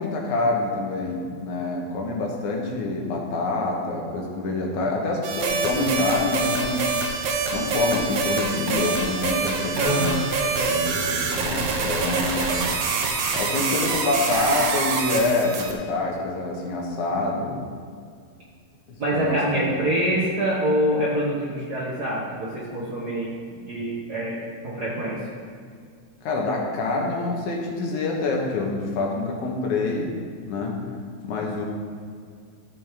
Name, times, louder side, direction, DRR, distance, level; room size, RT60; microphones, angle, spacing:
voice 1, 0.0-6.8 7.5-10.1 10.4-10.9 11.4-12.6 13.4-17.6 18.9-19.8 26.2-30.1 30.5-30.8 31.2-31.7, left 2 dB, 80° left, -1 dB, 2.6 m, -26 dB
sound 1, 5.2-15.7, right 4 dB, 70° right, 1.8 m, -25 dB
voice 2, 9.7-10.2 19.0-24.4 24.6-25.2, right 1 dB, 55° right, -6 dB, 1.1 m, -25 dB
13.0 x 6.2 x 3.6 m, 2.1 s
omnidirectional pair, 3.3 m